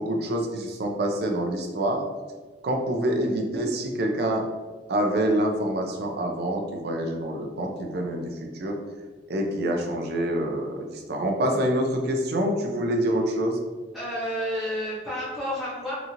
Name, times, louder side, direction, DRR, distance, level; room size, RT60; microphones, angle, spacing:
voice 1, 0.0-2.0 2.6-4.4 4.9-8.8 9.3-13.6, right 1 dB, 60° right, 2 dB, 0.4 m, -26 dB
voice 2, 13.9-15.9, equal, ahead, -11 dB, 0.7 m, -30 dB
2.9 x 2.5 x 2.7 m, 1.3 s
head